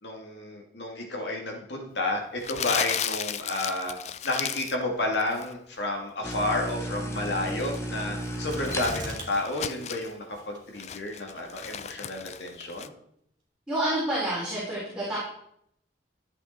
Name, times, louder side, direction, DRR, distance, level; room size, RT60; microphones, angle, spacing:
voice 1, 0.0-4.0 4.2-12.9, left 2 dB, 80° left, 0 dB, 2.5 m, -31 dB
Crumpling crinkling, 2.4-4.8 5.1-5.5 7.3-10.1 10.6-12.9, left 9 dB, 35° left, 0.4 m, -35 dB
sound 1, 6.2-9.3, equal, 15° left, 1.0 m, -34 dB
sound 2, 8.5-9.4 9.7-9.8 10.4-10.8 11.4-11.5, right 2 dB, 25° right, 3.0 m, -38 dB
voice 2, 13.7-15.2, right 1 dB, 5° right, -9 dB, 3.8 m, -28 dB
13.0 x 8.2 x 4.4 m, 0.72 s
head